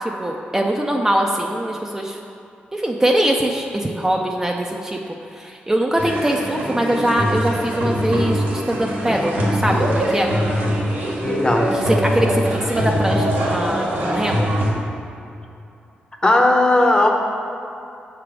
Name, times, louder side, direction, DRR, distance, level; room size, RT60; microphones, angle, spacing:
voice 1, 0.0-2.2 2.7-5.0 5.3-10.3 11.7-14.5, right 1 dB, 15° right, 0 dB, 0.5 m, -22 dB
sound 1, 6.0-14.7, equal, 85° right, 1.3 m, -22 dB
voice 2, 11.2-11.7 16.2-17.1, left 2 dB, 25° left, 2 dB, 0.8 m, -16 dB
6.8 x 3.4 x 6.0 m, 2.7 s
cardioid pair, 90°, 4 cm